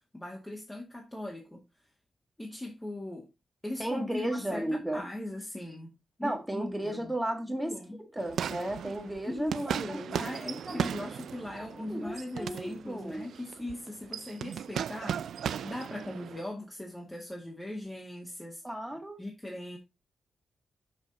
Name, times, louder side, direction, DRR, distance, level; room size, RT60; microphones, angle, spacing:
voice 1, 0.1-1.6 2.4-3.3 3.6-5.9 6.2-7.1 7.5-8.0 9.3-18.6 19.2-19.8, left 1 dB, 15° left, 1.9 m, -39 dB
voice 2, 3.8-5.0 6.2-7.8 8.1-10.0 10.6-10.9 11.6-13.3 18.6-19.2, right 1 dB, 5° right, 1.7 m, -34 dB
sound 1, 8.2-16.4, right 8 dB, 80° right, 0.3 m, -37 dB
6.5 x 5.9 x 4.0 m
cardioid pair, 85°, 0 cm